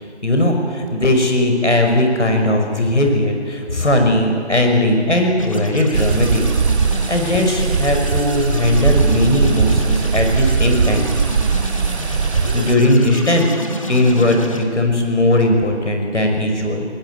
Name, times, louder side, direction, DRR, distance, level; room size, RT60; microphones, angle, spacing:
voice 1, 0.2-6.4 7.1-11.1 12.2-13.5 13.9-16.9, left 1 dB, 80° left, 3 dB, 5.7 m, -18 dB
sound 1, 5.4-14.6, left 1 dB, 30° left, 1.3 m, -31 dB
sound 2, 5.9-12.8, right 5 dB, 70° right, 0.7 m, -19 dB
20.0 x 19.0 x 9.2 m, 2.1 s
figure-of-eight pair, 180°, 35 cm